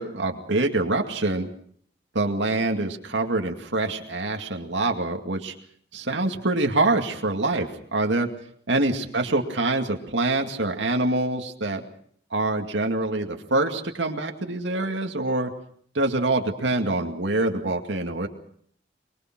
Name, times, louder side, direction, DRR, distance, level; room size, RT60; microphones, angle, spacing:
voice 1, 0.0-1.5 2.1-5.5 5.9-8.3 8.7-11.8 12.3-15.5 15.9-18.3, right 2 dB, 80° right, 3 dB, 2.3 m, -25 dB
24.0 x 23.0 x 6.0 m, 0.62 s
head